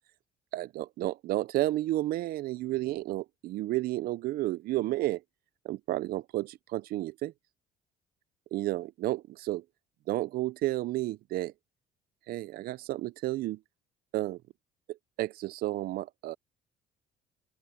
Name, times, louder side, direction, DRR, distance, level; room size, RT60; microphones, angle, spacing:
voice 1, 0.5-5.2 5.6-7.3 8.5-9.6 10.1-11.5 12.3-13.6 14.1-14.4 14.9-16.3, right 16 dB, 65° right, 0.4 m, -32 dB
open air
cardioid pair, 110°, 17 cm